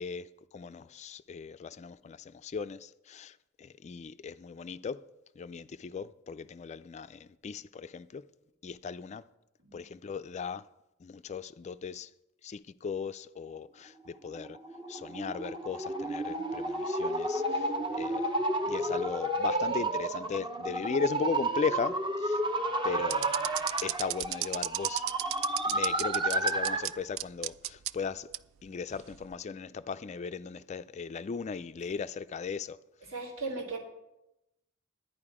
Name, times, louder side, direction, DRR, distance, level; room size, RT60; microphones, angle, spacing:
voice 1, 0.0-5.0 5.4-8.2 8.6-9.2 9.7-10.6 11.0-12.1 12.4-14.6 14.9-18.3 18.6-22.4 22.8-23.3 23.8-25.0 25.6-28.3 28.6-32.8, left 5 dB, 35° left, 0.3 m, -37 dB
sound 1, 14.3-27.0, right 1 dB, 25° right, 0.7 m, -31 dB
sound 2, 23.1-26.9 27.2-27.9 28.3-28.4 29.1-29.3, right 15 dB, 75° right, 0.3 m, -33 dB
voice 2, 33.1-33.8, right 3 dB, 90° right, 2.8 m, -36 dB
11.0 x 10.0 x 4.9 m
head